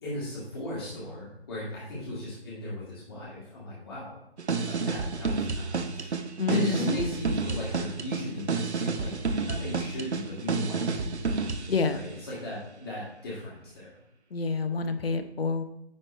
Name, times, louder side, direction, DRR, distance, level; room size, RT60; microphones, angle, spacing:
voice 1, 0.0-4.2 4.7-6.1 6.5-11.2 11.9-13.9, left 1 dB, 20° left, -7 dB, 2.0 m, -37 dB
sound 1, 4.4-11.8, right 4 dB, 90° right, 0.8 m, -30 dB
voice 2, 6.4-7.1 11.7-12.0 14.3-15.6, left 4 dB, 65° left, 8 dB, 0.9 m, -28 dB
9.7 x 3.3 x 4.3 m, 0.83 s
figure-of-eight pair, 170°, 33 cm